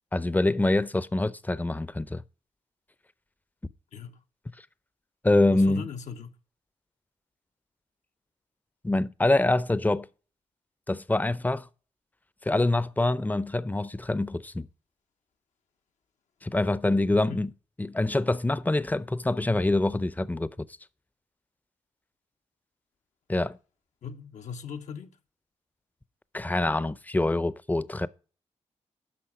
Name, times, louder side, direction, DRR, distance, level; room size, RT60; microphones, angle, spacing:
voice 1, 0.1-2.2 5.2-5.8 8.8-10.1 10.9-11.7 12.4-14.7 16.4-17.5 17.8-20.5 23.3-23.6 26.3-28.1, left 2 dB, 15° left, 0.6 m, -25 dB
voice 2, 5.5-6.3 17.1-17.4 24.0-25.1, left 6 dB, 75° left, 0.9 m, -39 dB
10.5 x 5.9 x 4.9 m
supercardioid pair, 45°, 12 cm